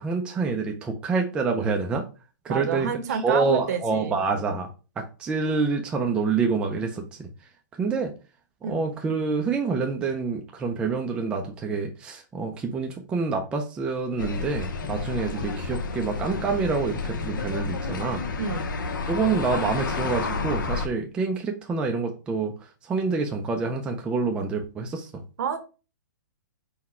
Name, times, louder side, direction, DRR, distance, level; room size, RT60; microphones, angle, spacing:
voice 1, 0.0-2.0 2.4-2.9 3.2-4.7 5.0-7.3 7.8-8.1 8.6-18.2 19.1-22.5 22.8-25.1, right 4 dB, 10° right, 2 dB, 0.3 m, -27 dB
voice 2, 2.5-4.2 8.6-8.8 18.4-18.7 25.4-25.6, right 6 dB, 55° right, 9 dB, 0.8 m, -29 dB
sound 1, 14.2-20.9, left 4 dB, 90° left, 0.8 m, -30 dB
4.0 x 2.1 x 4.2 m, 0.33 s
hypercardioid pair, 155°, 10 cm